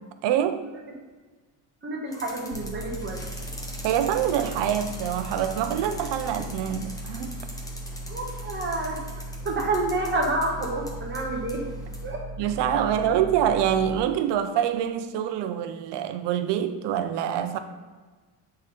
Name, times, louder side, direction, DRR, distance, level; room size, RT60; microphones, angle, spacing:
voice 1, 0.2-0.7 3.8-7.4 12.4-17.6, right 9 dB, 60° right, 0.6 m, -25 dB
voice 2, 1.8-3.2 8.1-9.0 9.4-11.7 12.0-12.3 12.9-13.0, right 2 dB, 25° right, 0.8 m, -29 dB
sound 1, 2.1-12.1, left 1 dB, 10° left, 0.6 m, -43 dB
sound 2, 2.5-14.0, right 1 dB, 50° left, 0.5 m, -38 dB
7.8 x 3.8 x 4.2 m
cardioid pair, 175°, 48 cm